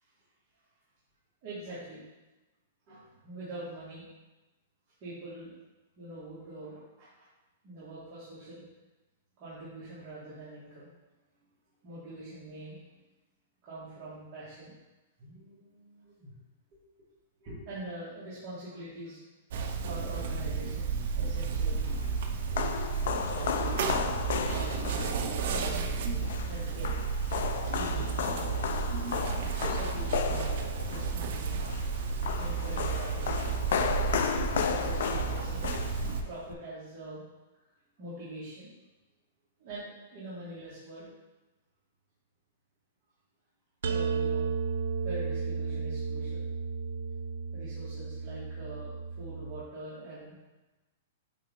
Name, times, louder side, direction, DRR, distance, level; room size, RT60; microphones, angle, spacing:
voice 1, 1.4-2.0 2.9-4.0 5.0-5.5 6.0-7.3 7.6-8.6 9.4-10.9 11.8-12.8 13.6-14.7 15.2-16.3 17.4-19.3 19.8-20.9 21.2-21.9 23.2-24.1 24.5-25.3 26.4-26.9 27.5-28.7 29.4-30.5 30.8-31.6 32.3-33.6 34.6-35.7 36.2-37.2 38.0-38.8 39.6-41.1 43.9-44.5 45.0-46.5 47.5-50.3, right 1 dB, 25° right, -12 dB, 2.1 m, -44 dB
sound 1, 19.5-36.2, right 5 dB, 45° right, 0.6 m, -32 dB
sound 2, 21.6-36.5, left 7 dB, 55° left, 0.5 m, -34 dB
sound 3, 43.8-49.6, right 5 dB, 90° right, 0.6 m, -33 dB
8.4 x 3.9 x 3.7 m, 1.1 s
hypercardioid pair, 175°, 0 cm